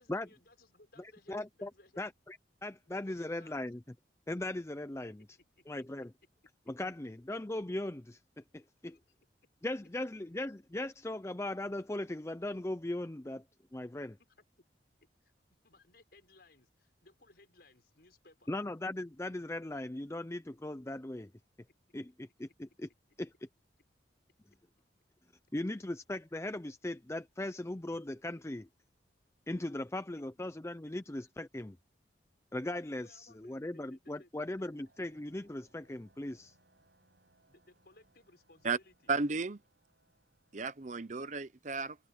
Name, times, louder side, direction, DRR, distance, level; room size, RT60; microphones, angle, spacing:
voice 1, 0.0-2.0 2.8-3.7 5.2-5.3 5.6-5.7 14.2-14.3 15.2-18.5 32.9-34.6 37.5-39.1, left 2 dB, 55° left, 6.4 m, -62 dB
voice 2, 1.0-1.7 2.0-2.4 2.6-3.8 4.3-5.2 5.7-6.1 6.7-9.0 9.6-13.4 13.7-14.1 18.5-21.3 21.9-22.9 23.2-23.3 25.5-28.7 29.5-31.8 32.5-36.5, left 1 dB, 15° left, 0.5 m, -38 dB
sound 1, 34.4-41.4, right 2 dB, 65° right, 7.6 m, -71 dB
voice 3, 39.1-39.6 40.5-42.0, right 4 dB, 40° right, 0.7 m, -33 dB
head